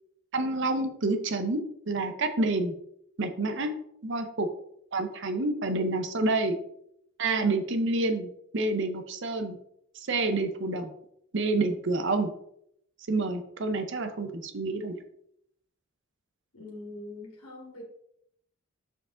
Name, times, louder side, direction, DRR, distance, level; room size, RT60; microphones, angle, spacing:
voice 1, 0.3-2.7 3.2-3.7 4.0-4.5 4.9-6.6 7.2-9.6 10.0-10.9 11.3-12.3 13.1-15.0, right 2 dB, 55° right, 7 dB, 0.7 m, -28 dB
voice 2, 16.5-17.8, left 2 dB, 85° left, -2 dB, 1.8 m, -43 dB
7.3 x 4.6 x 3.8 m, 0.74 s
head